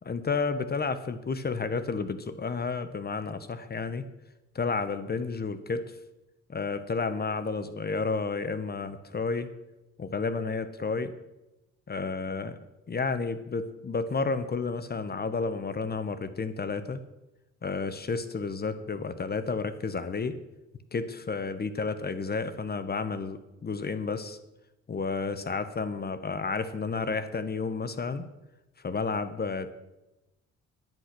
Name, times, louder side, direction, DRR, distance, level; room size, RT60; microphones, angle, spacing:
voice 1, 0.0-4.1 4.5-5.9 6.5-9.5 10.0-11.1 11.9-12.6 12.9-17.0 17.6-20.4 20.9-24.4 24.9-28.3 28.8-29.7, left 4 dB, 30° left, 12 dB, 1.0 m, -31 dB
11.0 x 9.9 x 6.0 m, 0.98 s
cardioid pair, 90°, 30 cm